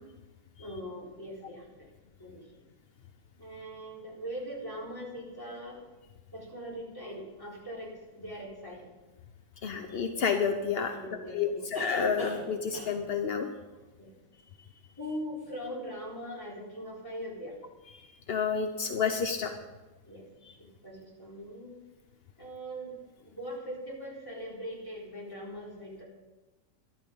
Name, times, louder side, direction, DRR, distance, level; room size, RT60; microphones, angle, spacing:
voice 1, 0.6-1.9 2.2-2.6 3.4-5.8 6.3-8.9 10.8-11.7 14.0-14.1 15.0-17.6 20.0-20.3 20.6-21.8 22.4-26.0, equal, 10° left, -5 dB, 4.1 m, -41 dB
voice 2, 9.6-10.9 11.3-13.5 17.9-19.6, left 6 dB, 55° left, 6 dB, 0.6 m, -30 dB
sound 1, 9.7-9.8 11.7-12.5 12.7-13.1 15.0-15.1 15.4-15.5, equal, 35° left, 5.6 m, -40 dB
12.5 x 12.0 x 5.4 m, 1.1 s
omnidirectional pair, 2.0 m